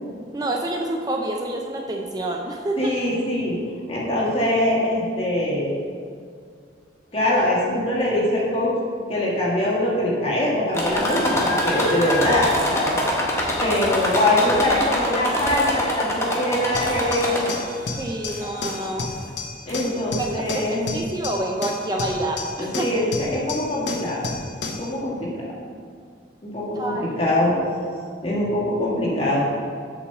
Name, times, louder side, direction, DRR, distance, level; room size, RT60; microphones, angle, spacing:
voice 1, 0.3-2.9 18.0-19.1 20.2-22.9 26.7-27.4, right 1 dB, 20° right, 1 dB, 0.5 m, -28 dB
voice 2, 2.8-3.6 3.9-5.8 7.1-8.7 9.1-13.0 13.6-17.4 19.7-21.1 22.6-24.3 24.8-25.3 26.4-27.5 28.2-29.4, left 1 dB, 35° left, -5 dB, 2.0 m, -23 dB
sound 1, 10.7-17.8 18.3-18.9 19.7-19.8 20.2-20.3, equal, 15° left, 1.2 m, -25 dB
sound 2, 16.7-24.9, left 3 dB, 90° left, 1.0 m, -32 dB
7.3 x 5.4 x 6.9 m, 2.2 s
head